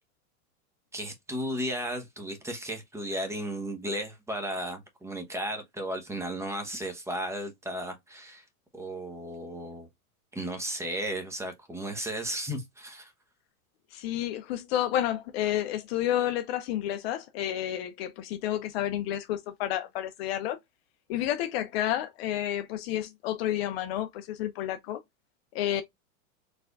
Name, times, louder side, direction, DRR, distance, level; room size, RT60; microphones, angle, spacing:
voice 1, 0.9-8.4 8.7-9.9 10.3-13.1, right 1 dB, 5° right, 0.8 m, -34 dB
voice 2, 13.9-20.6 21.1-25.0 25.5-25.8, left 12 dB, 45° left, 0.5 m, -30 dB
4.3 x 3.3 x 2.3 m
supercardioid pair, 130°, 44 cm